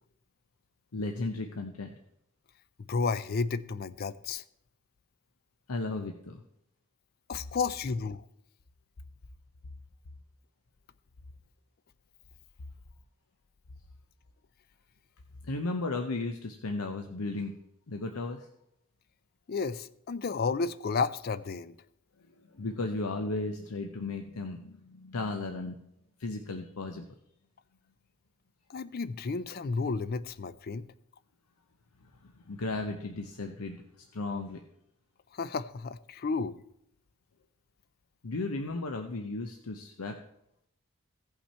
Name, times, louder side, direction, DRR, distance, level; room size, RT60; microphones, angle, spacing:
voice 1, 0.9-1.9 5.7-6.4 15.4-17.5 17.9-18.5 22.5-25.8 26.2-27.0 32.2-34.6 38.2-40.2, left 2 dB, 85° left, 0.8 m, -35 dB
voice 2, 2.9-4.4 7.3-8.2 19.5-21.8 28.7-30.9 35.3-36.6, left 4 dB, 45° left, 0.4 m, -32 dB
16.0 x 5.7 x 4.3 m
head